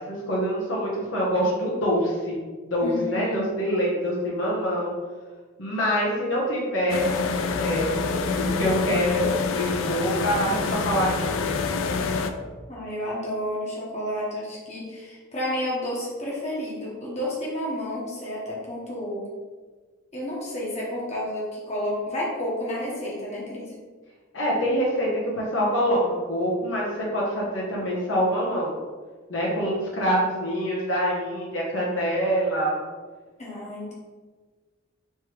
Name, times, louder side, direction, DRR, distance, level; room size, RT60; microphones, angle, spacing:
voice 1, 0.0-4.9 5.6-7.1 7.6-11.5 24.3-25.1 25.4-28.7 29.3-32.8, equal, 65° left, -4 dB, 1.0 m, -25 dB
voice 2, 2.8-3.4 12.7-19.3 20.1-23.7 33.4-33.9, left 1 dB, 35° left, -5 dB, 1.2 m, -31 dB
sound 1, 6.9-12.3, left 4 dB, 85° left, 0.4 m, -26 dB
3.4 x 3.1 x 4.6 m, 1.4 s
head